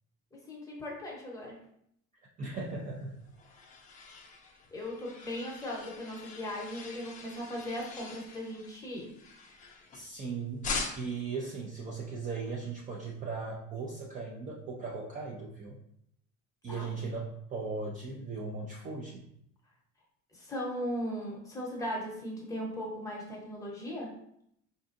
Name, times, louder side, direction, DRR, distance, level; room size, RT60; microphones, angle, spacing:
voice 1, 0.3-1.6 4.7-9.1 16.7-16.9 20.3-24.1, equal, 10° left, -3 dB, 0.9 m, -38 dB
voice 2, 2.4-3.1 9.9-10.7 11.0-15.8 16.6-19.2, right 4 dB, 25° right, -2 dB, 0.4 m, -38 dB
sound 1, 2.9-10.2 10.6-11.3, left 4 dB, 25° left, 0.5 m, -42 dB
4.5 x 2.6 x 2.5 m, 0.73 s
cardioid pair, 150°, 30 cm